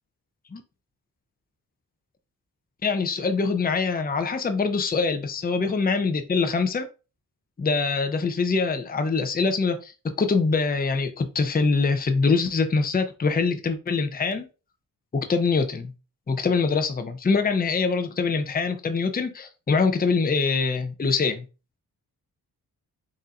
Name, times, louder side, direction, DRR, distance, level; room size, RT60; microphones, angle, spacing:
voice 1, 2.8-6.9 7.6-14.5 15.1-15.9 16.3-21.5, left 4 dB, 25° left, 7 dB, 0.6 m, -24 dB
4.2 x 3.6 x 2.5 m, 0.32 s
cardioid pair, 60°, 38 cm